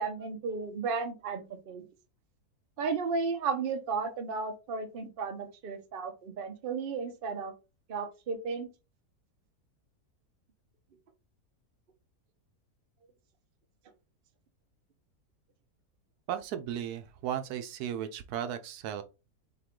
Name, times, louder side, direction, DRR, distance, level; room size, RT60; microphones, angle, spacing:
voice 1, 0.0-1.9 2.8-7.5 7.9-8.7, right 4 dB, 45° right, 0.8 m, -34 dB
voice 2, 16.3-19.0, right 10 dB, 80° right, 1.1 m, -35 dB
5.8 x 2.3 x 3.6 m
omnidirectional pair, 1.6 m